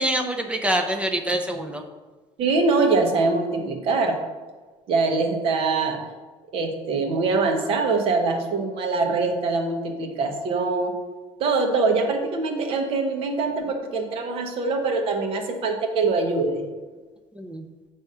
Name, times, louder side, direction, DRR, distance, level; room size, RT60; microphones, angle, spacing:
voice 1, 0.0-1.8 17.4-17.6, right 1 dB, 10° right, 4 dB, 0.6 m, -25 dB
voice 2, 2.4-4.2 4.9-6.0 6.5-10.9 11.4-16.6, right 3 dB, 55° right, 3 dB, 1.2 m, -23 dB
7.9 x 3.5 x 5.6 m, 1.3 s
cardioid pair, 150°, 12 cm